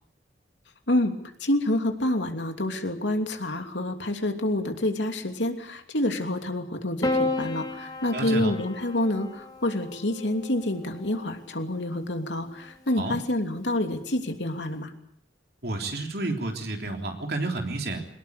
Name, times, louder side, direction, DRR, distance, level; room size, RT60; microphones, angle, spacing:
voice 1, 1.4-14.9, left 1 dB, 80° left, 5 dB, 2.9 m, -28 dB
Piano, 7.0-11.5 12.7-13.4, left 2 dB, 20° left, 2.2 m, -33 dB
voice 2, 8.1-8.5 13.0-13.2 15.6-18.1, right 2 dB, 55° right, 3 dB, 3.5 m, -30 dB
23.0 x 19.5 x 8.3 m, 0.69 s
head